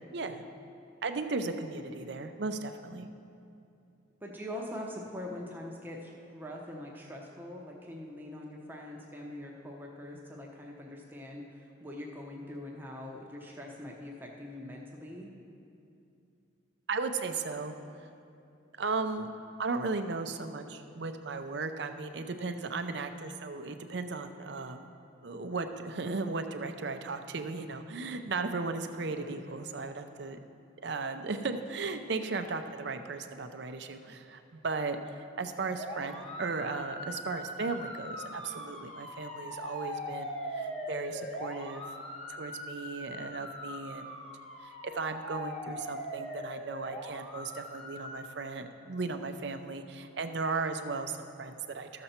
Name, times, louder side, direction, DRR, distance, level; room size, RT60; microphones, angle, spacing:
voice 1, 0.1-0.5 1.0-3.1 16.9-17.8 18.8-19.3 19.6-24.9 25.2-30.4 30.8-41.8 42.3-44.1 44.6-52.0, right 4 dB, 60° right, 8 dB, 0.5 m, -36 dB
voice 2, 4.2-15.3 29.3-29.6, left 1 dB, 10° right, -1 dB, 0.8 m, -43 dB
sound 1, 35.7-48.2, equal, 35° left, 1.0 m, -41 dB
13.5 x 6.8 x 4.3 m, 2.6 s
head